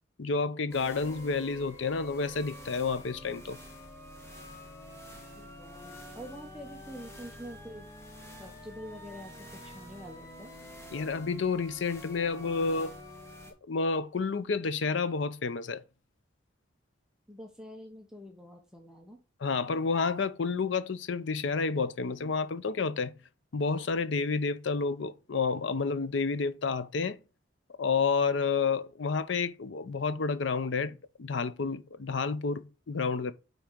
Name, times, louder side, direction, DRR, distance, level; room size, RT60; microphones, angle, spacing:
voice 1, 0.2-3.6 10.9-13.0 13.7-15.8 19.4-23.1 23.5-27.2 27.8-33.3, left 4 dB, 65° left, 0.6 m, -30 dB
sound 1, 0.7-13.5, equal, 15° left, 1.5 m, -47 dB
voice 2, 5.4-7.9 8.4-10.5 17.3-19.2, equal, 5° right, 0.8 m, -46 dB
5.8 x 4.2 x 5.0 m
head